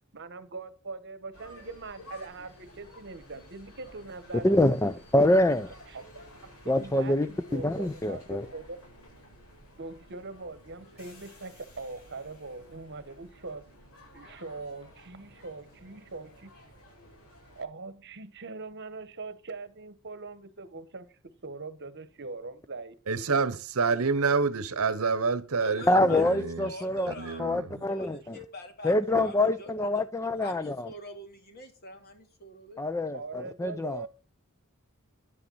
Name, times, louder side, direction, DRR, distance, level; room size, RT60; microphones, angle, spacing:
voice 1, 0.1-4.6 5.1-5.4 5.9-6.0 6.4-8.8 9.8-13.7 14.1-16.5 17.5-23.4 23.9-24.1 33.1-34.1, right 3 dB, 55° right, 1.2 m, -42 dB
sound 1, 1.3-17.6, left 1 dB, 70° left, 7.7 m, -53 dB
voice 2, 4.3-5.7 6.7-8.5 25.9-27.1 27.4-28.4 28.8-30.9 32.8-34.1, left 1 dB, 15° left, 0.5 m, -25 dB
voice 3, 23.1-26.7 27.1-27.8, right 4 dB, 70° right, 0.9 m, -28 dB
voice 4, 25.6-27.5 27.9-30.0 30.4-32.9, left 1 dB, 45° left, 2.7 m, -45 dB
11.0 x 8.9 x 5.5 m
head